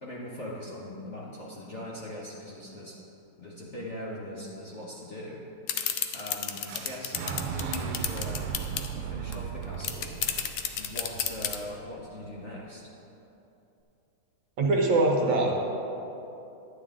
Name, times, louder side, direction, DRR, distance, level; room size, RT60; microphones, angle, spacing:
voice 1, 0.0-3.0 3.4-5.4 6.1-8.4 8.9-10.1 10.8-12.8, left 1 dB, 45° left, -5 dB, 1.0 m, -40 dB
sound 1, 5.7-8.9 9.3-9.4 9.6-11.6, left 9 dB, 70° left, 1.0 m, -30 dB
Fire / Explosion, 6.7-12.6, right 8 dB, 85° right, 1.5 m, -37 dB
voice 2, 14.6-15.5, right 2 dB, 65° right, 0 dB, 1.7 m, -23 dB
11.5 x 9.0 x 3.7 m, 3.0 s
omnidirectional pair, 2.4 m